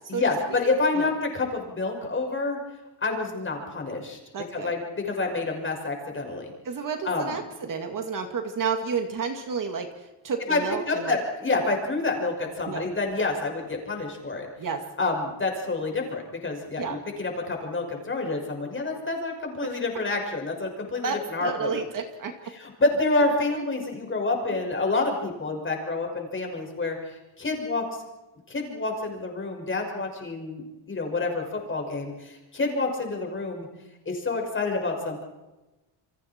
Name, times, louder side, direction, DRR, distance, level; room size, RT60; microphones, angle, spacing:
voice 1, 0.1-2.6 3.0-4.2 4.5-6.5 7.0-7.3 10.5-14.5 15.0-21.8 22.5-28.0 28.5-33.7 34.1-35.2, left 3 dB, 25° left, 2 dB, 6.0 m, -28 dB
voice 2, 4.3-4.7 6.6-11.2 12.7-12.9 14.6-14.8 16.8-17.0 19.6-19.8 21.0-22.3, right 5 dB, 40° right, 5 dB, 2.2 m, -31 dB
29.5 x 25.0 x 4.5 m, 1.1 s
cardioid pair, 135°, 49 cm